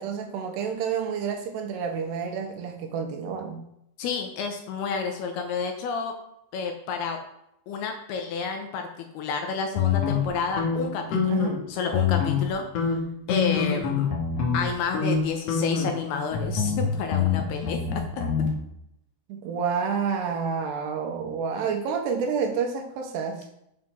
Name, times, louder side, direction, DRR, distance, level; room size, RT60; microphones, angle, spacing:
voice 1, 0.0-3.6 11.3-11.6 19.3-23.5, right 6 dB, 75° right, 4 dB, 3.0 m, -29 dB
voice 2, 4.0-6.1 6.5-7.2 7.7-8.9 9.1-12.6 13.3-14.1 14.5-18.2, left 5 dB, 75° left, 4 dB, 2.6 m, -30 dB
sound 1, 9.8-11.6 11.9-12.5 12.8-14.6 14.9-15.2 15.5-18.5, left 6 dB, 55° left, 2.0 m, -26 dB
7.7 x 5.9 x 6.2 m, 0.78 s
omnidirectional pair, 5.2 m